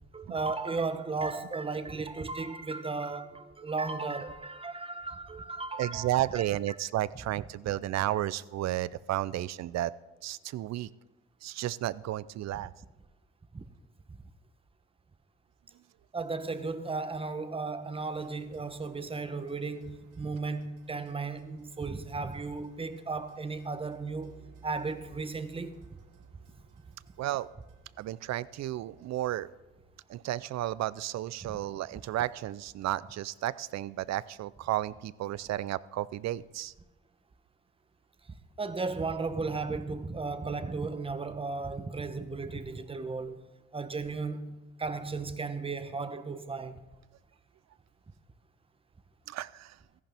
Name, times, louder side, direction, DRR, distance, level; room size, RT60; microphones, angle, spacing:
voice 1, 0.1-6.8 13.5-13.7 14.1-14.2 16.1-24.4 24.6-25.8 31.4-31.5 38.6-46.8, right 4 dB, 20° right, 0.8 m, -35 dB
voice 2, 5.8-9.9 10.2-10.9 11.4-12.7 27.2-27.5 28.0-29.5 30.1-36.7 49.3-49.8, right 14 dB, 60° right, 0.5 m, -32 dB
sound 1, 18.0-30.0, right 6 dB, 85° right, 1.3 m, -59 dB
14.5 x 11.0 x 3.5 m
cardioid pair, 90°, 30 cm